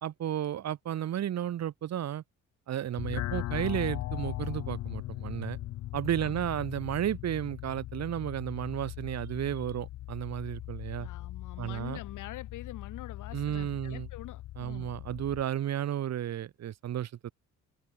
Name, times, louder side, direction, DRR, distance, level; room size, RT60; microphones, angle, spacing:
voice 1, 0.0-2.2 2.7-5.6 5.9-11.1 11.6-12.0 13.3-14.1 14.6-17.3, right 11 dB, 60° right, 1.3 m, -33 dB
sound 1, 3.0-15.4, left 15 dB, 65° left, 0.5 m, -39 dB
voice 2, 11.0-15.0, left 14 dB, 85° left, 3.9 m, -45 dB
cardioid pair, 90°, 30 cm